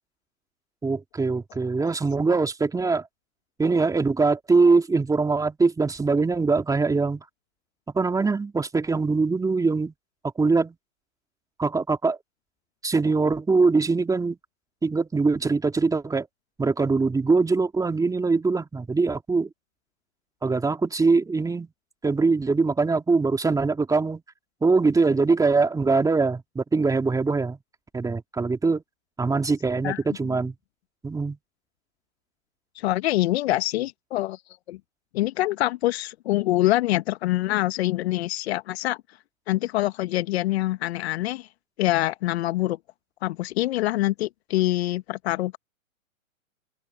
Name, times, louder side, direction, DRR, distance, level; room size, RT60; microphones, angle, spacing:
voice 1, 0.8-3.1 3.6-7.2 7.9-9.9 10.4-10.8 11.6-12.2 12.8-14.4 14.8-16.3 16.6-19.5 20.4-21.7 22.0-24.2 24.6-27.6 27.9-28.8 29.2-30.5 31.0-31.4, right 4 dB, 10° right, 3.1 m, -22 dB
voice 2, 32.7-34.4 34.7-34.8 35.1-39.0 39.5-41.5 41.8-42.8 43.2-45.6, left 16 dB, 50° left, 1.7 m, -25 dB
open air
hypercardioid pair, 120°, 42 cm